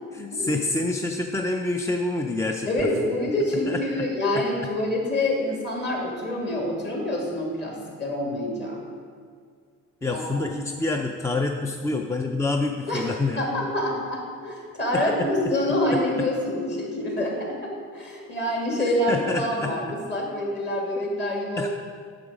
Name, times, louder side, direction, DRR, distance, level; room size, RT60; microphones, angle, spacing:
voice 1, 0.1-2.7 3.0-3.1 3.7-4.0 4.3-4.4 10.0-13.4 19.1-19.7 21.6-21.7, left 2 dB, 10° left, 3 dB, 0.4 m, -27 dB
voice 2, 2.6-8.8 10.1-10.5 12.9-13.0 13.4-21.7, left 1 dB, 35° left, -1 dB, 2.5 m, -26 dB
8.6 x 7.1 x 5.0 m, 2.1 s
cardioid pair, 120°, 31 cm